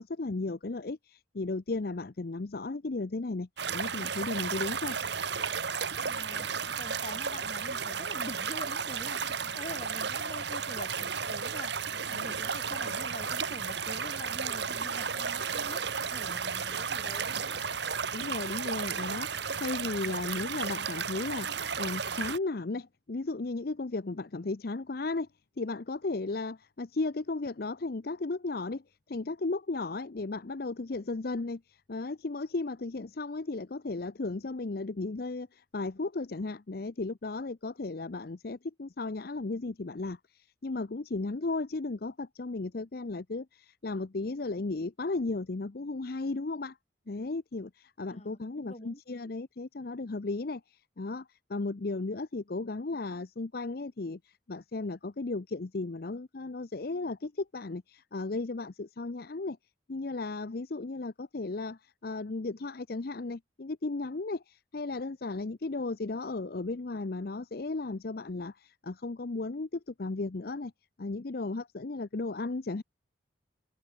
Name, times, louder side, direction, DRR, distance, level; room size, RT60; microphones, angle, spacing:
voice 1, 0.0-5.0 18.1-25.3 25.6-28.8 29.1-46.8 47.1-59.6 59.9-70.7 71.0-72.8, left 3 dB, 50° left, 0.6 m, -35 dB
sound 1, 3.6-22.4, right 6 dB, 60° right, 1.5 m, -33 dB
voice 2, 6.0-17.6 48.1-49.0, left 1 dB, 35° left, 3.8 m, -45 dB
head